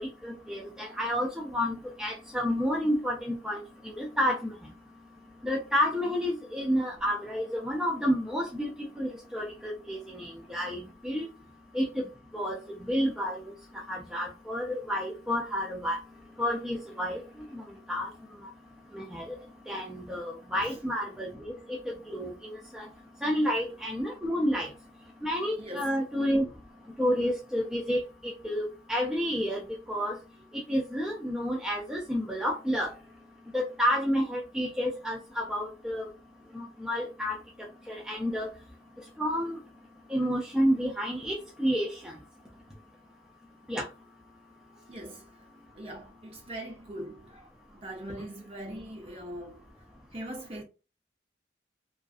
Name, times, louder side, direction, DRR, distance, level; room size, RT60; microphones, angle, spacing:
voice 1, 0.0-4.5 5.4-11.2 11.7-12.0 12.3-16.0 16.4-17.2 17.5-17.6 17.9-18.1 18.9-19.3 19.7-22.9 23.2-24.7 25.2-26.5 27.0-29.6 29.9-30.2 30.5-32.9 33.5-36.1 36.5-37.4 37.9-38.5 39.2-39.6 40.1-42.1 43.7-43.9, equal, 5° right, 0.4 m, -30 dB
voice 2, 25.6-25.9 44.9-47.5 47.7-49.6 50.1-50.6, right 1 dB, 35° right, 0.7 m, -41 dB
2.5 x 2.3 x 2.4 m
head